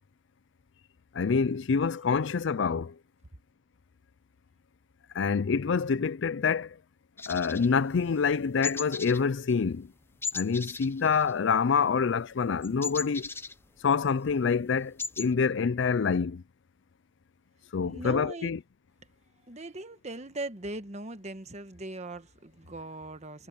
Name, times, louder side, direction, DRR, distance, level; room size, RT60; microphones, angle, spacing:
voice 1, 1.1-2.9 5.1-6.7 7.3-9.9 10.3-13.3 13.8-16.4 17.7-18.6, left 5 dB, 65° left, 0.5 m, -26 dB
sound 1, 7.2-8.3 8.6-9.2 9.5-9.7 10.2-11.7 12.0-14.1 14.5-14.6 14.8-15.3, left 4 dB, 10° left, 0.7 m, -37 dB
voice 2, 17.8-18.5 19.5-23.5, right 2 dB, 35° right, 1.4 m, -40 dB
head